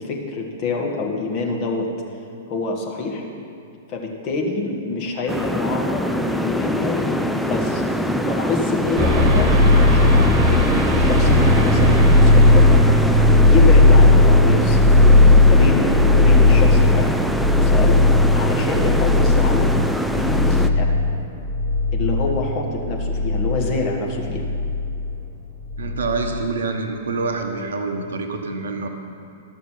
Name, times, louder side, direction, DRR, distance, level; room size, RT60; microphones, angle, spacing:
voice 1, 0.0-1.9 2.5-3.2 3.9-7.8 8.3-9.5 9.9-12.7 13.3-14.9 15.4-17.1 17.5-18.0 18.3-19.7 20.2-20.9 21.9-24.5, left 3 dB, 35° left, 0 dB, 1.5 m, -26 dB
sound 1, 5.3-20.7, equal, ahead, 0.4 m, -23 dB
sound 2, 9.0-25.1 25.6-26.4, left 2 dB, 40° right, 1.3 m, -16 dB
voice 2, 25.8-28.9, right 4 dB, 65° right, 4 dB, 1.0 m, -26 dB
12.5 x 6.6 x 5.8 m, 2.5 s
figure-of-eight pair, 105°, 0 cm